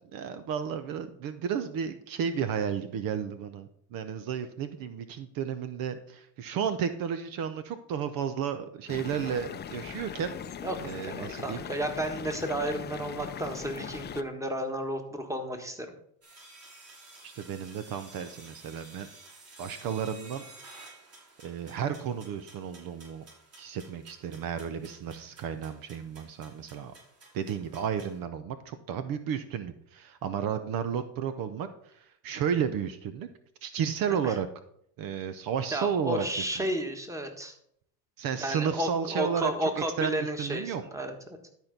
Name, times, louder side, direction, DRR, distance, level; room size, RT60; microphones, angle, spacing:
voice 1, 0.1-10.3 10.8-11.6 17.2-19.1 19.6-20.4 21.4-23.2 23.6-26.9 27.3-31.7 32.2-33.3 33.6-34.5 35.0-36.3 36.6-36.7 38.2-39.5 39.8-40.8, right 8 dB, 60° right, 11 dB, 0.9 m, -32 dB
sound 1, 8.9-14.2, left 8 dB, 25° left, 0.6 m, -40 dB
voice 2, 10.6-15.9 34.2-34.4 35.7-37.6 38.4-41.1, right 1 dB, 10° right, 6 dB, 1.5 m, -32 dB
sound 2, 16.2-28.2, right 2 dB, 40° right, 4.2 m, -53 dB
12.0 x 4.5 x 5.2 m, 0.69 s
supercardioid pair, 100°, 38 cm